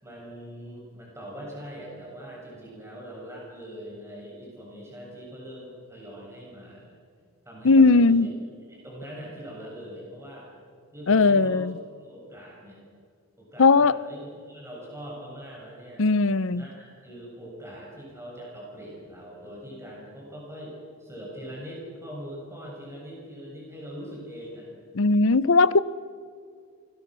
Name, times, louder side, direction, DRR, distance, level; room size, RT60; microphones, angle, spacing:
voice 1, 0.0-7.0 7.5-8.3 8.7-10.5 10.9-11.7 12.0-12.8 13.4-16.1 16.5-24.7, equal, 10° right, -3 dB, 6.9 m, -42 dB
voice 2, 7.6-8.3 11.1-11.7 13.6-13.9 16.0-16.6 24.9-25.8, left 3 dB, 60° left, 18 dB, 0.7 m, -18 dB
28.0 x 21.0 x 6.2 m, 2.2 s
head